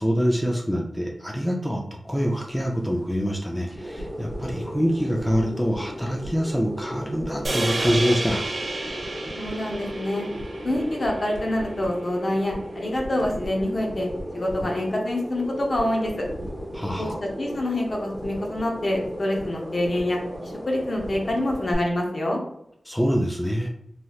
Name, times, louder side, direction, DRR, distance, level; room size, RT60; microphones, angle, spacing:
voice 1, 0.0-8.4 16.7-17.2 22.9-23.7, equal, 5° left, 0 dB, 0.4 m, -25 dB
sound 1, 2.1-21.7, equal, 20° right, 1.0 m, -36 dB
sound 2, 7.4-11.9, right 2 dB, 50° right, 0.6 m, -31 dB
voice 2, 9.3-10.3 10.6-14.1 14.3-16.2 17.0-22.4, left 1 dB, 50° left, 0 dB, 0.7 m, -26 dB
3.1 x 2.8 x 2.3 m, 0.76 s
wide cardioid pair, 110°, 0 cm